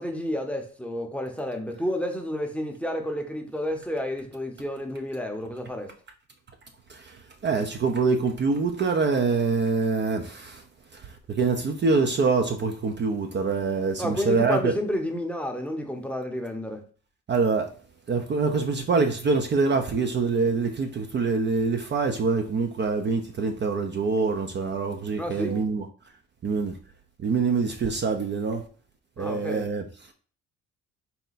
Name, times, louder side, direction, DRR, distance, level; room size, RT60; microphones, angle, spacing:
voice 1, 0.0-5.9 14.0-16.8 25.2-25.6 29.2-29.7, left 1 dB, 5° left, 3 dB, 0.7 m, -30 dB
voice 2, 7.4-10.2 11.4-14.7 17.3-17.7 18.1-25.9 26.4-26.7 27.2-28.6 29.2-29.8, right 4 dB, 35° right, 5 dB, 0.5 m, -25 dB
4.2 x 2.2 x 3.9 m, 0.40 s
cardioid pair, 90°, 30 cm